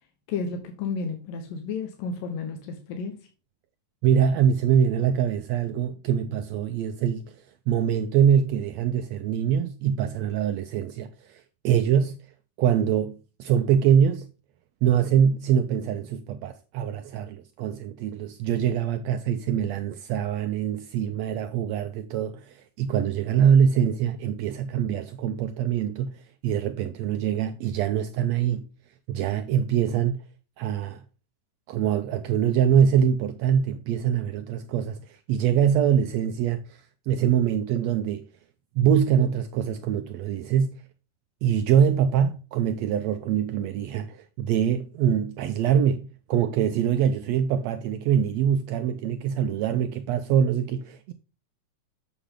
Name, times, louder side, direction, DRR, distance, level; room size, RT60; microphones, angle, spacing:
voice 1, 0.3-3.3, left 5 dB, 90° left, 2.9 m, -32 dB
voice 2, 4.0-7.3 7.7-12.2 12.6-14.3 14.8-28.6 29.1-30.2 30.6-31.0 31.7-36.6 37.1-38.2 38.8-40.8 41.4-51.1, right 8 dB, 85° right, 1.5 m, -24 dB
8.4 x 7.2 x 3.7 m
omnidirectional pair, 3.8 m